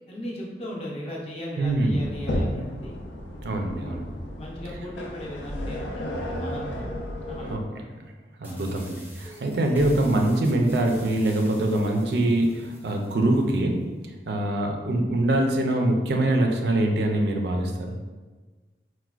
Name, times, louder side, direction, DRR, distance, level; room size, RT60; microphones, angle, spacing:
voice 1, 0.1-3.0 3.7-4.0 4.4-7.0 7.3-7.8 8.4-8.6, left 1 dB, 35° left, -3 dB, 0.6 m, -37 dB
sound 1, 1.6-7.6, left 1 dB, 80° left, 0.4 m, -33 dB
voice 2, 1.6-2.1 3.4-4.1 7.4-7.6 8.4-13.8 14.3-17.9, right 1 dB, 70° right, 3 dB, 0.4 m, -24 dB
sound 2, 8.4-13.4, right 1 dB, 10° right, 0.4 m, -44 dB
4.4 x 2.1 x 2.3 m, 1.3 s
head